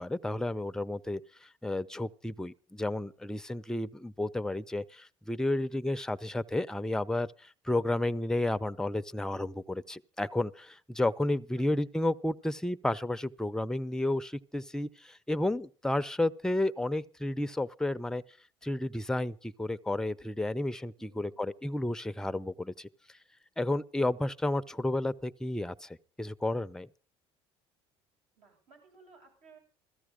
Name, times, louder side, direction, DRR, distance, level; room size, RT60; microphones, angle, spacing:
voice 1, 0.0-18.2 18.6-22.9 23.6-26.9, left 1 dB, 5° left, 0.6 m, -32 dB
voice 2, 21.0-21.4 24.5-25.0 28.4-29.6, right 4 dB, 70° right, 8.0 m, -60 dB
16.5 x 14.0 x 5.0 m
supercardioid pair, 95°, 12 cm